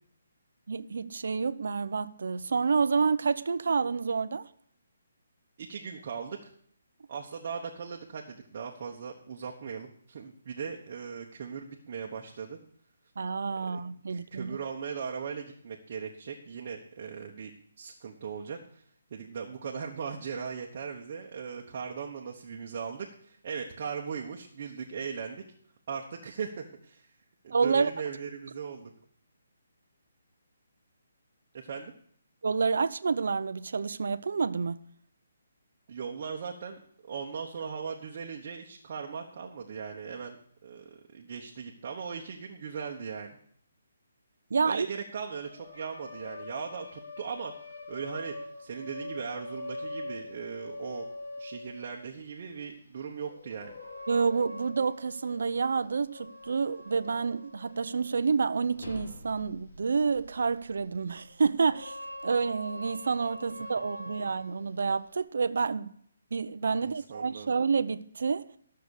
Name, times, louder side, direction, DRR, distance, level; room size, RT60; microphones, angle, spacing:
voice 1, 0.7-4.5 13.2-14.6 27.5-27.9 32.4-34.8 44.5-44.9 54.1-62.0 62.2-65.9 66.3-68.5, right 5 dB, 65° right, 0.6 m, -28 dB
voice 2, 5.6-6.5 7.1-12.6 13.7-13.8 14.1-18.8 19.1-25.4 25.9-27.0 27.4-28.9 31.5-31.9 35.9-36.8 37.1-40.4 40.6-43.4 44.6-47.5 47.9-48.3 48.6-51.1 51.4-53.7 66.7-67.5, right 6 dB, 35° right, 1.1 m, -38 dB
sound 1, 45.3-52.1 53.2-58.3 58.7-65.2, left 2 dB, 90° left, 3.9 m, -44 dB
13.5 x 6.7 x 6.5 m
hypercardioid pair, 175°, 0 cm